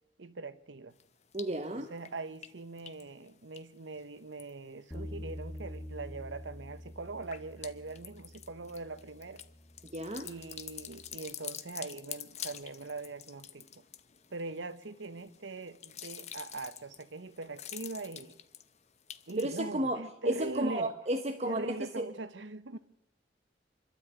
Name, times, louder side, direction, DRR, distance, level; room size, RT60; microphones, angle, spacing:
voice 1, 0.2-0.9 1.5-9.4 10.2-13.7 14.3-18.4 19.3-20.9 21.4-22.8, right 3 dB, 85° right, 1.1 m, -41 dB
sound 1, 1.0-1.6 2.0-4.9 5.3-5.9 6.2-19.6, left 10 dB, 35° left, 0.9 m, -47 dB
voice 2, 1.3-1.9 9.8-10.3 19.4-22.1, right 1 dB, 35° right, 1.1 m, -33 dB
Bass guitar, 4.9-11.2, equal, 20° left, 1.6 m, -47 dB
25.0 x 12.5 x 9.2 m
head